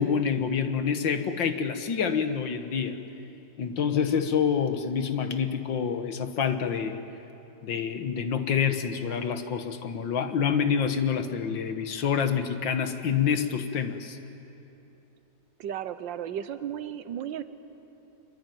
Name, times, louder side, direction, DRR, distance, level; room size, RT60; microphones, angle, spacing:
voice 1, 0.0-3.0 3.6-7.0 7.6-14.2, left 7 dB, 75° left, 8 dB, 2.0 m, -27 dB
voice 2, 15.6-17.4, right 9 dB, 80° right, 12 dB, 1.6 m, -34 dB
25.5 x 23.5 x 9.2 m, 2.9 s
omnidirectional pair, 2.0 m